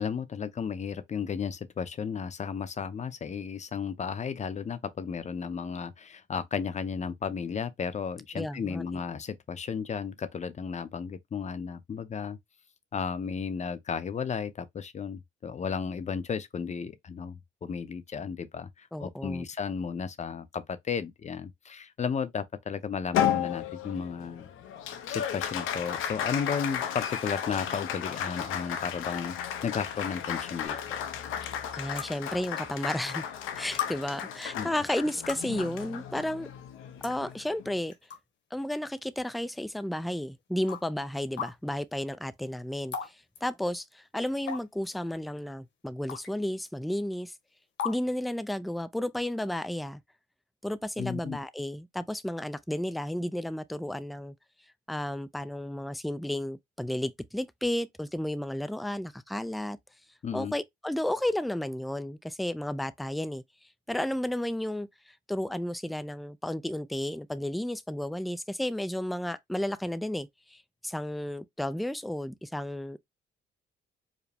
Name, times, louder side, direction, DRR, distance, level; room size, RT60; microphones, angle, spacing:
voice 1, 0.0-12.4 12.9-24.5 25.1-31.0 34.6-34.7 51.0-51.4 60.2-60.5, left 6 dB, 35° left, 0.7 m, -34 dB
voice 2, 8.3-8.8 18.9-19.5 31.8-33.2 33.6-36.5 37.0-37.9 38.5-47.4 47.8-50.0 50.6-54.4 54.9-59.8 60.3-63.4 63.9-73.0, left 1 dB, ahead, 0.3 m, -33 dB
Applause, 23.1-37.8, left 9 dB, 90° left, 0.7 m, -34 dB
sound 1, 30.6-30.7 32.0-32.1 33.1-33.2 33.8-33.9 35.1-35.5 36.5-36.6 37.0-37.2 37.9-38.2 38.7-38.8 39.7-39.8 40.7-40.8 41.4-41.5 42.9-43.1 43.3-43.4 44.5-44.9 46.1-46.3 46.6-46.7 47.8-48.0, left 8 dB, 70° left, 1.2 m, -35 dB
4.9 x 2.2 x 3.4 m
cardioid pair, 90°, 20 cm